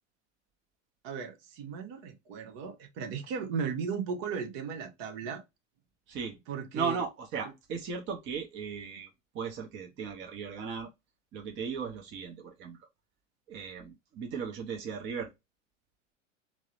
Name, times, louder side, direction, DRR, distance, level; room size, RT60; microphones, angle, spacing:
voice 1, 1.0-5.4 6.5-7.0 7.4-7.5, right 6 dB, 55° right, 0.9 m, -36 dB
voice 2, 6.7-9.1 9.3-10.9 11.3-12.8 13.5-15.3, right 5 dB, 30° right, 0.6 m, -36 dB
2.8 x 2.0 x 2.4 m
hypercardioid pair, 100°, 38 cm